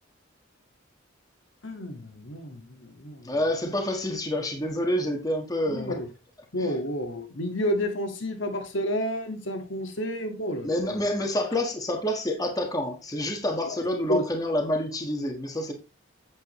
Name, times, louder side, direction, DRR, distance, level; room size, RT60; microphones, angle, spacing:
voice 1, 1.6-3.3 3.6-3.7 5.7-6.1 6.5-11.1 13.7-13.8 14.1-14.2, equal, 70° left, 1.7 m, -30 dB
voice 2, 3.2-6.0 6.6-6.7 10.6-15.7, left 1 dB, 20° left, 1.5 m, -28 dB
8.4 x 7.6 x 3.1 m
head